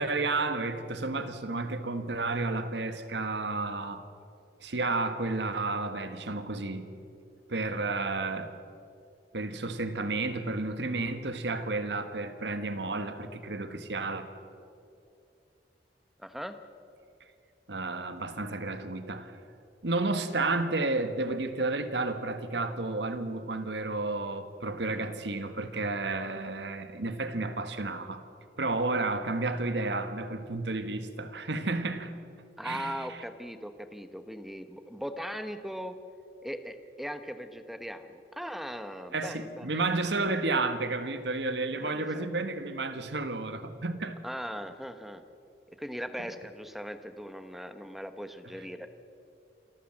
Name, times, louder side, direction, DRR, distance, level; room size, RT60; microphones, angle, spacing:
voice 1, 0.0-4.0 4.6-6.9 7.5-8.5 9.3-14.2 17.7-19.3 19.8-28.2 28.6-32.1 32.6-33.2 39.1-44.2, right 3 dB, 80° right, 10 dB, 1.5 m, -31 dB
voice 2, 16.2-16.6 32.6-36.0 36.4-39.7 41.7-42.3 44.2-45.2 45.8-48.9, equal, ahead, 9 dB, 1.0 m, -39 dB
27.5 x 13.5 x 7.8 m, 2.6 s
head